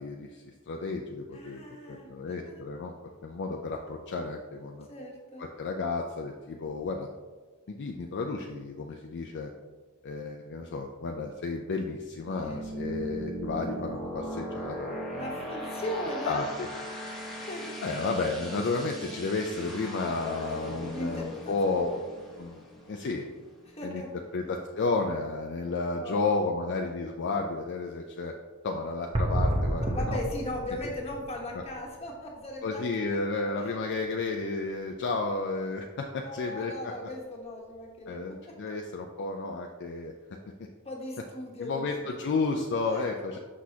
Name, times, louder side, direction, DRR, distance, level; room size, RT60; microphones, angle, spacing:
voice 1, 0.0-1.6 1.9-2.9 3.2-4.9 5.4-7.1 7.7-9.5 10.0-15.4 16.2-16.7 17.8-21.9 22.4-23.3 23.8-24.0 24.3-28.3 28.6-30.2 32.6-36.9 38.1-40.1 41.6-43.4, left 3 dB, 55° left, 2 dB, 0.4 m, -32 dB
voice 2, 1.3-2.6 4.9-5.5 12.5-12.6 15.1-16.5 17.3-17.8 20.9-22.1 23.6-24.1 26.0-26.7 29.8-32.9 33.6-33.8 36.2-38.6 40.8-41.9 42.8-43.1, left 1 dB, 30° left, 0 dB, 1.2 m, -38 dB
sound 1, 11.9-23.7, equal, ahead, 1.0 m, -39 dB
sound 2, 29.1-32.2 32.4-32.6 33.1-33.2 37.8-37.9, right 1 dB, 25° right, 0.8 m, -30 dB
6.2 x 6.1 x 2.8 m, 1.4 s
head